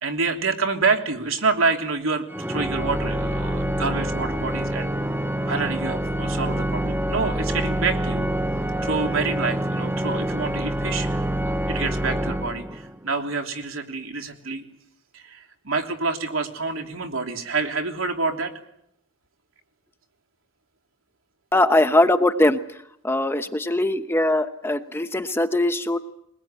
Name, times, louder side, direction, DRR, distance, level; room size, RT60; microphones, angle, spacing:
voice 1, 0.0-4.9 5.5-8.3 8.8-11.2 11.7-14.6 15.1-18.5, right 4 dB, 75° right, 4 dB, 3.2 m, -27 dB
Organ, 2.3-13.1, right 1 dB, 10° right, 0.9 m, -26 dB
voice 2, 21.5-22.6 23.0-26.0, left 1 dB, 10° left, 9 dB, 1.0 m, -21 dB
22.0 x 21.0 x 9.0 m, 0.76 s
head